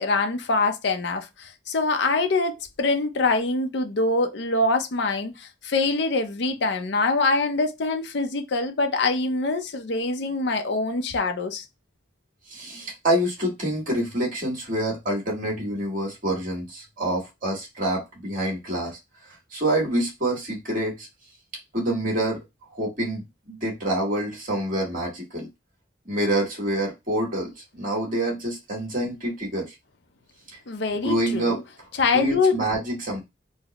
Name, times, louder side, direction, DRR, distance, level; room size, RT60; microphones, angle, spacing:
voice 1, 0.0-11.6 30.7-31.6 32.0-32.6, left 3 dB, 65° left, 0.5 m, -24 dB
voice 2, 12.5-19.0 19.5-21.1 21.7-22.4 22.7-25.5 26.0-29.7 31.0-31.6 32.1-33.2, right 1 dB, 45° right, 1.7 m, -27 dB
3.9 x 2.1 x 2.9 m
head